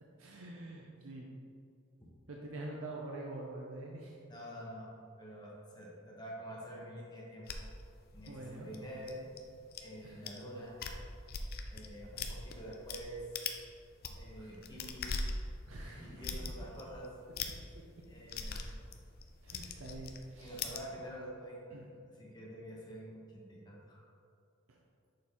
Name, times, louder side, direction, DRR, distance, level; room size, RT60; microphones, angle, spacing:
voice 1, 0.2-1.3 2.3-4.2 8.2-8.7 10.0-10.2 14.4-14.5 15.7-16.4 19.4-20.7 21.7-21.8 24.7-24.8, right 2 dB, 80° right, -2 dB, 0.6 m, -46 dB
voice 2, 4.3-4.9 5.2-7.7 8.1-9.3 9.8-10.7 11.7-13.2 14.1-15.2 15.8-17.1 18.1-18.7 20.4-21.6 22.2-24.0, equal, 20° left, -4 dB, 1.1 m, -47 dB
sound 1, 7.5-9.8 10.3-10.4 10.7-13.0 13.3-13.6 13.9-20.8, left 4 dB, 45° left, 0.4 m, -41 dB
6.5 x 4.3 x 3.6 m, 2.4 s
head